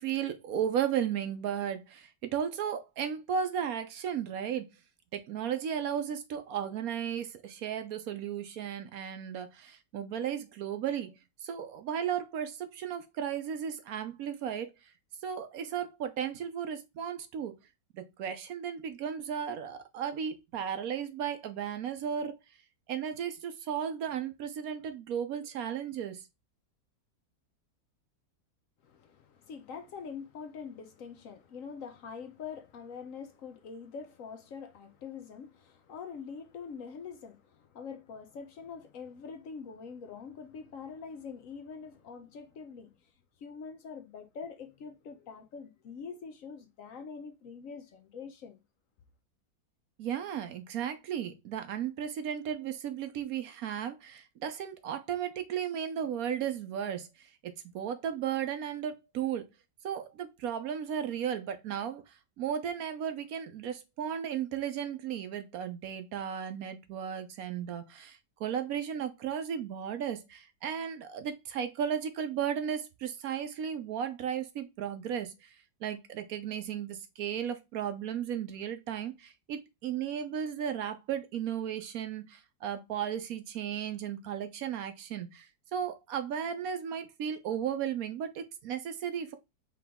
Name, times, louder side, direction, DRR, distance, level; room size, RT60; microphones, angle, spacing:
voice 1, 0.0-4.7 5.1-11.1 11.4-14.7 15.2-17.6 17.9-22.4 22.9-26.2 50.0-57.1 57.4-59.5 59.8-75.5 75.8-85.5 85.7-89.3, right 8 dB, 70° right, 1.1 m, -35 dB
voice 2, 28.8-42.9 43.4-48.6, left 6 dB, 65° left, 1.0 m, -44 dB
5.0 x 3.1 x 3.5 m
omnidirectional pair, 1.7 m